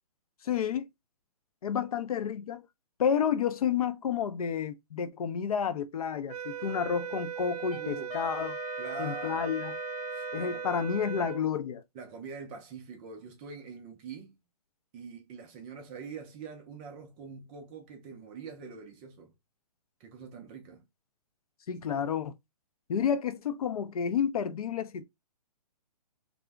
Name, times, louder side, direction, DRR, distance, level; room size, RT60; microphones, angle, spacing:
voice 1, 0.4-0.9 1.6-2.6 3.0-8.6 9.0-9.8 10.3-11.8 21.7-22.3 22.9-25.0, left 8 dB, 65° left, 0.5 m, -30 dB
sound 1, 6.3-11.5, right 9 dB, 85° right, 0.4 m, -38 dB
Wind instrument woodwind instrument, 7.6-10.7, left 5 dB, 20° left, 1.0 m, -42 dB
voice 2, 7.8-8.1 8.8-9.5 10.1-10.6 11.9-14.4 14.9-19.3 20.0-20.8, right 5 dB, 15° right, 0.3 m, -44 dB
2.5 x 2.0 x 3.2 m
hypercardioid pair, 145°, 20 cm